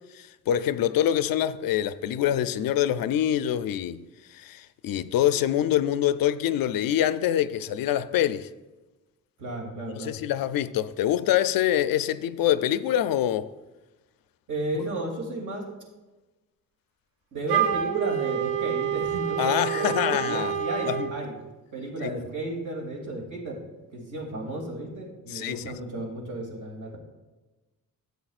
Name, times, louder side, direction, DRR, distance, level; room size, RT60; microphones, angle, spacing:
voice 1, 0.0-8.5 10.0-13.5 19.4-20.5 20.9-21.1 22.0-22.1 25.3-25.8, left 11 dB, 85° left, 0.5 m, -25 dB
voice 2, 9.4-10.1 14.5-15.7 17.3-21.4 21.7-23.6 23.9-27.0, right 1 dB, 60° right, 2.6 m, -33 dB
Wind instrument woodwind instrument, 17.5-21.1, right 9 dB, 85° right, 1.0 m, -27 dB
14.5 x 8.1 x 2.4 m
wide cardioid pair, 165°, 34 cm